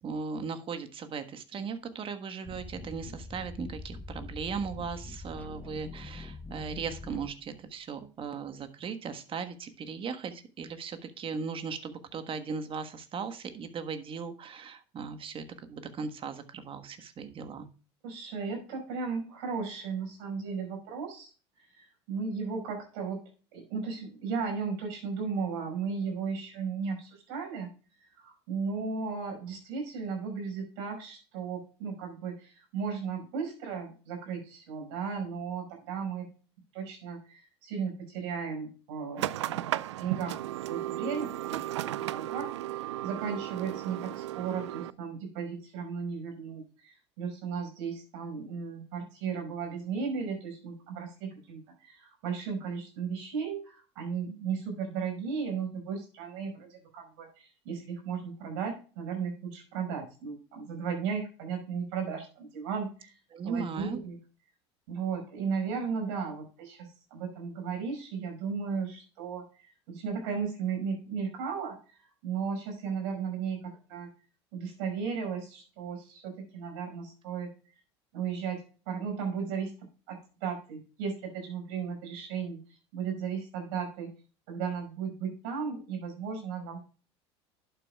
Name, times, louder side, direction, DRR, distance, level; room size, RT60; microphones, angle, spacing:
voice 1, 0.0-17.7 63.3-64.0, right 5 dB, 35° right, 9 dB, 1.4 m, -38 dB
sound 1, 2.4-7.7, left 2 dB, 10° left, 0.9 m, -44 dB
voice 2, 18.0-21.3 21.6-23.2 23.5-27.7 28.0-36.3 36.7-39.7 40.0-63.1 63.4-64.2 64.9-74.1 74.5-77.5 78.1-84.1 84.5-86.8, right 6 dB, 70° right, 2 dB, 5.3 m, -35 dB
sound 2, 39.2-44.9, right 14 dB, 85° right, 0.4 m, -35 dB
11.5 x 8.1 x 2.3 m, 0.36 s
hypercardioid pair, 85°, 15 cm